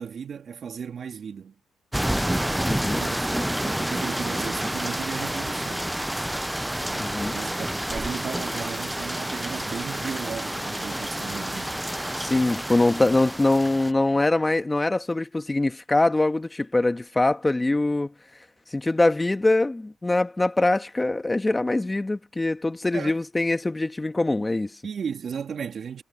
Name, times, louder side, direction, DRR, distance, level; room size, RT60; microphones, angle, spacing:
voice 1, 0.0-1.5 3.0-5.9 6.9-11.8 22.9-23.2 24.8-26.0, right 7 dB, 50° right, 3.2 m, -35 dB
sound 1, 1.9-13.9, right 1 dB, 5° right, 0.5 m, -29 dB
voice 2, 2.7-3.0 7.0-7.4 12.1-18.1 18.7-24.8, left 2 dB, 15° left, 1.6 m, -23 dB
cardioid pair, 90°, 0 cm